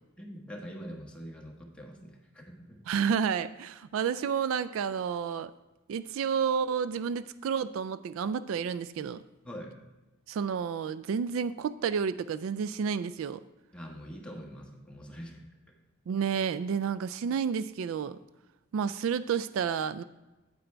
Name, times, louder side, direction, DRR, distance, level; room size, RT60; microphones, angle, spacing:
voice 1, 0.2-2.8 9.4-9.7 13.7-15.5, equal, 5° left, -1 dB, 1.3 m, -44 dB
voice 2, 2.9-5.5 5.9-9.2 10.3-13.4 16.1-18.2 18.7-20.0, right 7 dB, 70° right, 15 dB, 0.3 m, -30 dB
9.0 x 8.8 x 3.4 m, 1.1 s
head